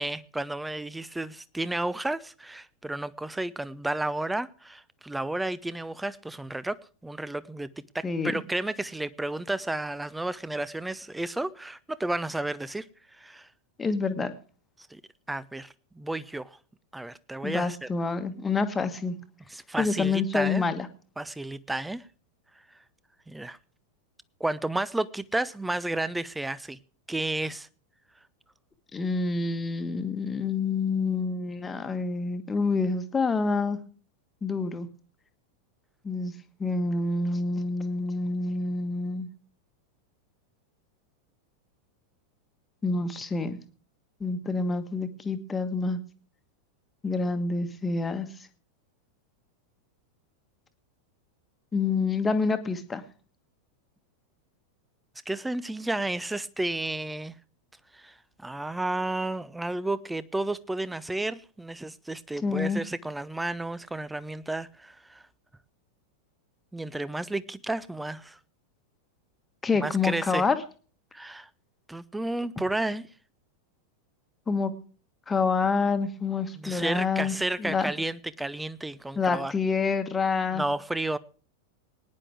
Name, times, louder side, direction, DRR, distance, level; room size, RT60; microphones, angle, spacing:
voice 1, 0.0-6.8 7.0-7.7 7.9-12.9 13.2-13.5 14.9-15.0 15.3-16.6 16.9-17.9 19.5-20.7 21.2-22.0 23.3-23.6 24.4-26.8 27.1-27.7 55.3-57.3 57.9-58.1 58.4-65.2 66.7-68.4 69.8-70.4 71.1-71.5 71.9-73.0 76.6-79.5 80.5-81.2, right 2 dB, 5° right, 0.6 m, -32 dB
voice 2, 8.0-8.3 13.8-14.3 17.4-19.2 19.8-20.9 28.9-33.8 34.4-34.9 36.0-36.3 36.6-39.3 42.8-43.6 44.2-46.0 47.0-48.3 51.7-53.0 62.4-62.8 69.6-70.6 74.5-74.7 75.3-77.9 79.2-80.6, left 4 dB, 15° left, 1.4 m, -27 dB
20.0 x 10.0 x 3.4 m
figure-of-eight pair, 90°, 0 cm